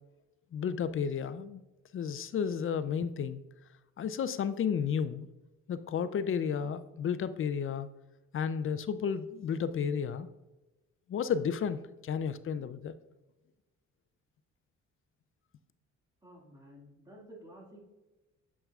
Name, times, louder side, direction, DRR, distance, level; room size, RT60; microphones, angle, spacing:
voice 1, 0.5-1.6 1.9-3.4 4.0-5.3 5.7-7.9 8.3-10.3 11.1-12.9, left 7 dB, 45° left, 13 dB, 0.5 m, -32 dB
voice 2, 16.2-17.9, equal, 10° right, -2 dB, 2.1 m, -52 dB
8.6 x 7.3 x 2.4 m, 1.1 s
cardioid pair, 90°, 30 cm